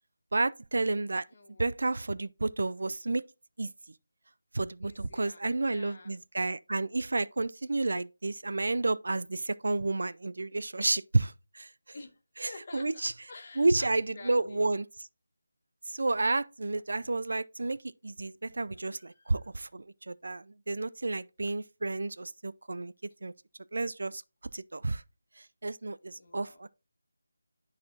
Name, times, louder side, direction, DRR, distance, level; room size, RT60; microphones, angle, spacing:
voice 1, 0.3-1.2 1.6-3.2 3.6-3.7 4.5-11.7 12.4-13.1 13.6-14.9 15.9-17.8 18.0-22.9 23.2-23.3 23.7-24.2 24.5-25.0 25.6-26.7, right 2 dB, 60° right, 0.4 m, -31 dB
voice 2, 1.3-1.7 4.8-6.1 11.9-14.7 18.9-19.5 26.2-26.6, left 3 dB, 40° left, 1.8 m, -50 dB
12.0 x 4.1 x 2.7 m
figure-of-eight pair, 160°, 0 cm